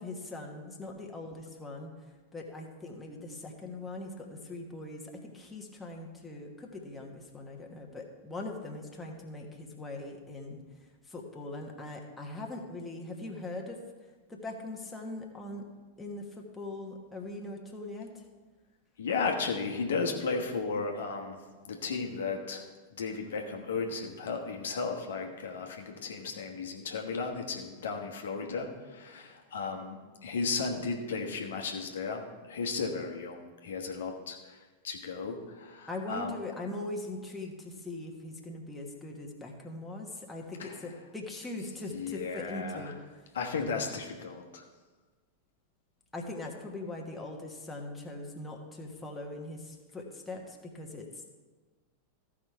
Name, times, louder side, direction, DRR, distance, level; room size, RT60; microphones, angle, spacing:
voice 1, 0.0-1.9 2.3-10.6 11.1-13.8 14.3-15.6 16.0-18.2 35.9-42.9 46.1-51.3, left 2 dB, 10° left, 0 dB, 1.4 m, -41 dB
voice 2, 19.0-21.4 21.7-22.6 22.9-36.4 40.6-40.9 41.9-42.9 43.3-44.6, left 4 dB, 65° left, 2 dB, 1.1 m, -35 dB
14.5 x 5.0 x 4.6 m, 1.3 s
figure-of-eight pair, 90°, 0 cm